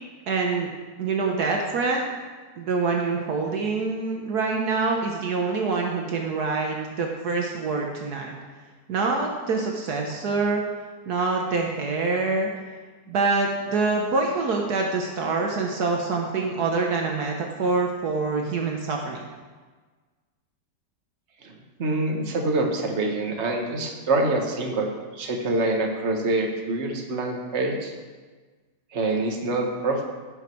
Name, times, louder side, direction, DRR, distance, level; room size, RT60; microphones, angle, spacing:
voice 1, 0.3-0.7 1.0-2.1 2.6-8.3 8.9-10.6 11.1-12.5 13.1-19.3, right 4 dB, 65° right, 1 dB, 1.5 m, -25 dB
voice 2, 21.4-27.9 28.9-30.0, right 2 dB, 40° right, 1 dB, 1.5 m, -26 dB
16.0 x 6.0 x 4.6 m, 1.4 s
omnidirectional pair, 1.9 m